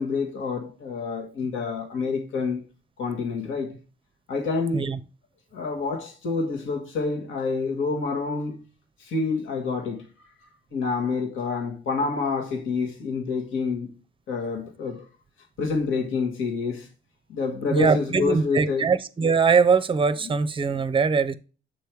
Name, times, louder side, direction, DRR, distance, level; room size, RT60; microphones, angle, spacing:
voice 1, 0.0-2.6 3.0-3.8 4.3-4.9 5.5-8.6 9.0-10.0 10.7-13.9 14.3-15.0 15.6-16.9 17.3-18.9, left 4 dB, 80° left, 1.5 m, -27 dB
voice 2, 17.7-21.3, right 5 dB, 25° right, 0.6 m, -22 dB
7.4 x 3.4 x 4.5 m
cardioid pair, 90°, 20 cm